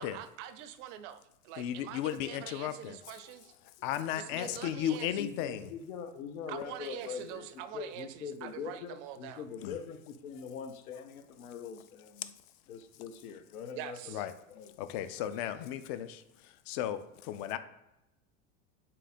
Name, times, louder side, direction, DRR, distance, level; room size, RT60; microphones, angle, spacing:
voice 1, 0.0-3.6 4.2-5.1 6.5-9.5 13.7-14.3, right 11 dB, 60° right, 12 dB, 0.5 m, -44 dB
voice 2, 1.6-3.0 3.8-5.7 9.6-9.8 12.2-12.3 14.1-14.3 14.8-17.6, left 11 dB, 50° left, 12 dB, 0.4 m, -35 dB
voice 3, 4.3-4.8 5.2-7.5 7.7-12.3 12.7-14.2 14.5-14.7, left 6 dB, 85° left, 8 dB, 0.7 m, -43 dB
3.7 x 2.8 x 4.2 m, 0.91 s
supercardioid pair, 115°, 42 cm